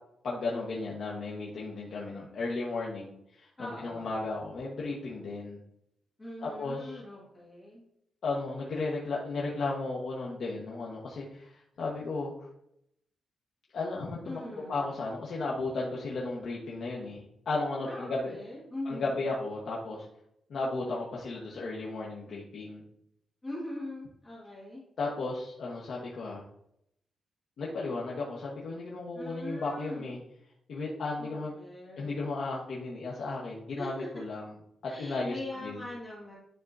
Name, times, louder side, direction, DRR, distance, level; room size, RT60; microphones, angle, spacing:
voice 1, 0.2-5.6 6.4-7.0 8.2-12.5 13.7-14.4 14.7-18.3 18.8-20.1 20.5-22.8 25.0-26.4 27.6-30.2 30.7-31.5 32.0-34.4 34.8-35.8, left 3 dB, 55° left, -4 dB, 1.0 m, -34 dB
voice 2, 3.6-4.2 6.2-7.8 14.2-15.0 17.8-19.2 23.4-24.8 29.1-30.1 31.2-32.3 33.8-34.1 34.9-36.3, left 1 dB, 15° left, -7 dB, 1.9 m, -42 dB
10.0 x 3.5 x 2.6 m, 0.76 s
wide cardioid pair, 170°, 0 cm